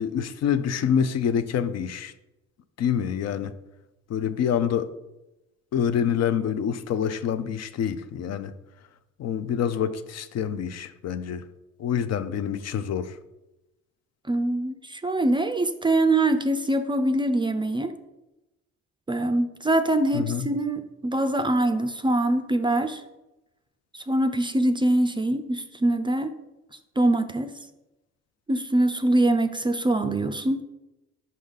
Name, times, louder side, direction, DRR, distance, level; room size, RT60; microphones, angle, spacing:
voice 1, 0.0-2.1 2.8-3.5 4.1-4.9 5.7-8.5 9.2-11.4 11.8-13.2 20.1-20.5, left 8 dB, 60° left, 0.5 m, -26 dB
voice 2, 14.3-17.9 19.1-23.0 23.9-26.3 27.0-27.5 28.5-30.6, right 1 dB, 15° right, 0.4 m, -23 dB
5.4 x 5.0 x 3.9 m
cardioid pair, 90°, 30 cm